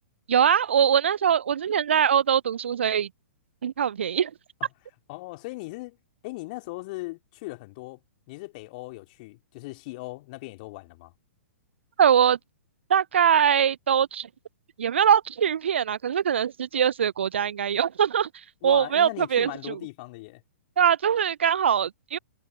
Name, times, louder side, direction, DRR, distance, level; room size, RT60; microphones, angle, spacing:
voice 1, 0.3-3.1 3.6-4.3 12.0-12.4 12.9-14.3 14.8-18.3 18.6-19.8 20.8-22.2, right 8 dB, 60° right, 0.5 m, -22 dB
voice 2, 5.1-6.0 6.2-8.0 8.3-11.1 18.6-20.4, left 23 dB, 40° left, 3.8 m, -38 dB
figure-of-eight pair, 110°, 7 cm